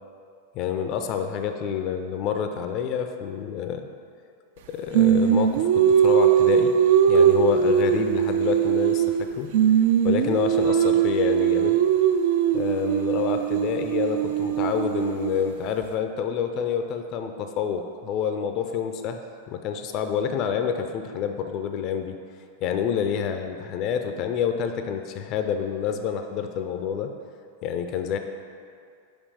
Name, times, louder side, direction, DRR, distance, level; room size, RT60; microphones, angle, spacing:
voice 1, 0.5-3.9 4.7-6.8 7.1-9.5 10.0-11.8 12.5-19.2 19.5-22.2 22.6-27.1 27.6-28.2, left 7 dB, 40° left, 7 dB, 0.4 m, -28 dB
Singing, 4.9-9.3 9.5-15.5, right 9 dB, 55° right, 0.3 m, -20 dB
5.3 x 4.9 x 4.8 m, 2.3 s
figure-of-eight pair, 90°, 0 cm